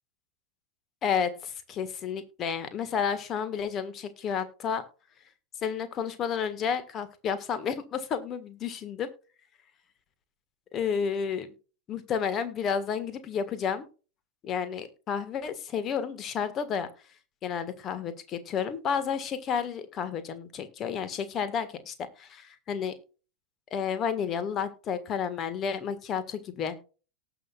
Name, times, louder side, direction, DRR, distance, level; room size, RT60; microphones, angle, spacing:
voice 1, 1.0-4.8 5.6-9.1 10.7-11.5 11.9-13.8 14.4-16.9 17.4-22.9 23.7-26.8, left 7 dB, 30° left, 12 dB, 1.6 m, -31 dB
18.5 x 6.2 x 2.4 m, 0.34 s
figure-of-eight pair, 90°, 0 cm